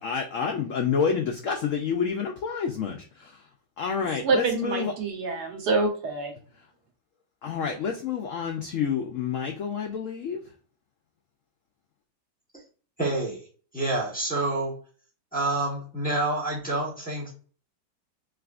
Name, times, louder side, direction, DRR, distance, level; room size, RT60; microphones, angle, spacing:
voice 1, 0.0-3.5 3.8-4.9 7.4-10.4, left 6 dB, 75° left, 3 dB, 0.7 m, -28 dB
voice 2, 4.2-6.3, right 3 dB, 70° right, 3 dB, 1.4 m, -26 dB
voice 3, 13.0-13.4 13.7-14.7 15.3-17.3, right 2 dB, 5° left, -3 dB, 0.8 m, -27 dB
3.6 x 3.3 x 2.4 m, 0.41 s
omnidirectional pair, 1.9 m